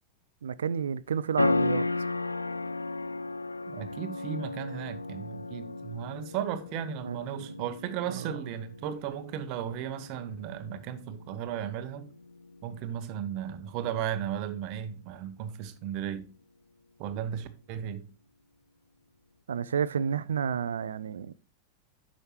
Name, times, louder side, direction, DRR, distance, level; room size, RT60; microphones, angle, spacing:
voice 1, 0.4-1.8 7.0-7.5 8.2-8.3 19.5-21.3, right 7 dB, 65° right, 0.4 m, -31 dB
sound 1, 1.4-13.8, left 2 dB, 80° left, 0.3 m, -35 dB
voice 2, 3.7-12.1 12.6-16.3 17.0-18.0, right 9 dB, 45° right, 0.9 m, -35 dB
9.8 x 6.2 x 3.1 m
figure-of-eight pair, 90°, 0 cm